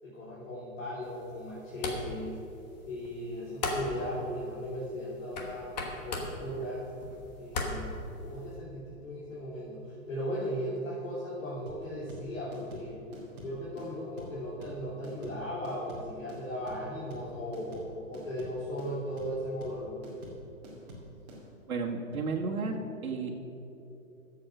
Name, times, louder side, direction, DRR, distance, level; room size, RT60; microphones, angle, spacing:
voice 1, 0.0-2.4 2.8-5.8 6.0-6.9 7.4-7.9 8.2-13.0 13.4-20.0, equal, 60° left, -8 dB, 3.3 m, -37 dB
sound 1, 1.0-8.6, left 2 dB, 30° left, 1.3 m, -39 dB
sound 2, 11.7-21.4, right 1 dB, 30° right, 2.5 m, -47 dB
voice 2, 21.7-22.8 23.0-23.3, right 4 dB, 75° right, 0 dB, 1.9 m, -32 dB
13.0 x 7.8 x 6.2 m, 2.9 s
hypercardioid pair, 170°, 42 cm